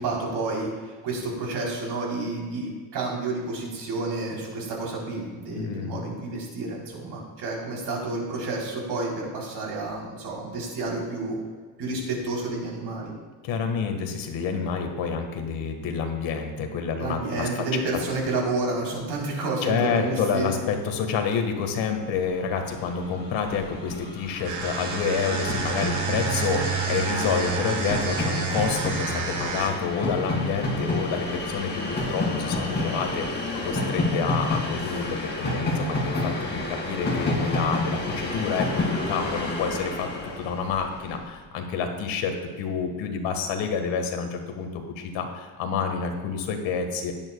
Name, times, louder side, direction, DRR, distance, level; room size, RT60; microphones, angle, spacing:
voice 1, 0.0-11.4 11.8-13.1 17.0-20.5, right 2 dB, 60° right, -2 dB, 3.6 m, -30 dB
voice 2, 5.5-6.0 13.4-17.5 19.6-31.8 32.1-40.1 40.4-47.1, left 6 dB, 85° left, 5 dB, 1.7 m, -28 dB
Train, 22.5-22.6 22.8-41.2, left 2 dB, 25° left, 2.2 m, -30 dB
sound 1, 24.4-29.9, right 5 dB, 40° right, 1.2 m, -29 dB
sound 2, 32.4-32.6 33.5-33.7 34.7-35.0 36.1-36.3 37.1-37.4 38.0-38.2 39.2-39.4 39.7-39.9 40.2-40.4, left 4 dB, 65° left, 2.6 m, -44 dB
16.5 x 10.5 x 2.3 m, 1.5 s
cardioid pair, 180°, 45 cm